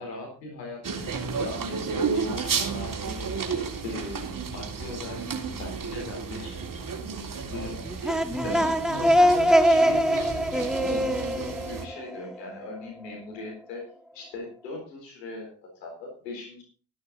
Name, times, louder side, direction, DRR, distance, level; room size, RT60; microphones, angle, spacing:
voice 1, 0.0-6.6 7.4-13.8 14.1-16.6, left 2 dB, 90° left, 0 dB, 4.1 m, -39 dB
sound 1, 0.8-11.9, right 5 dB, 40° right, 3.6 m, -32 dB
sound 2, 7.8-12.6, equal, ahead, 1.8 m, -23 dB
14.0 x 12.5 x 4.2 m, 0.37 s
hypercardioid pair, 45°, 49 cm